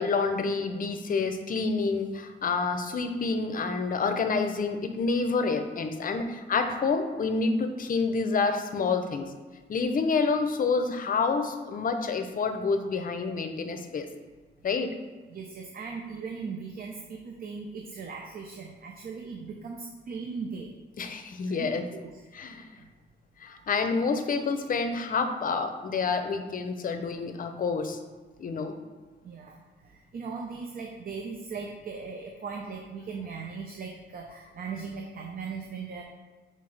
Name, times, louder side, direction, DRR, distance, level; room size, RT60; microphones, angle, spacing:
voice 1, 0.0-9.2 9.7-14.1 14.6-14.9 21.0-21.8 22.3-22.7 23.4-28.0 28.4-28.7, left 4 dB, 45° left, 7 dB, 0.6 m, -28 dB
voice 2, 15.2-20.7 21.5-21.7 22.0-22.2 22.8-22.9 28.4-28.6 29.2-36.0, right 5 dB, 45° right, 2 dB, 0.6 m, -38 dB
5.4 x 5.2 x 3.3 m, 1.4 s
cardioid pair, 130°, 20 cm